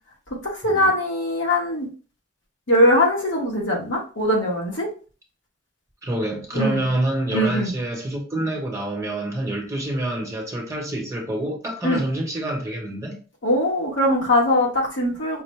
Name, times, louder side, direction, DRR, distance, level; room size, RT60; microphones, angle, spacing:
voice 1, 0.4-1.9 2.7-4.9 6.5-6.9 7.3-7.7 11.8-12.0 13.4-15.4, left 1 dB, 80° left, -2 dB, 1.4 m, -21 dB
voice 2, 6.0-13.2, right 1 dB, 15° right, -1 dB, 1.0 m, -27 dB
5.4 x 2.1 x 3.2 m, 0.36 s
head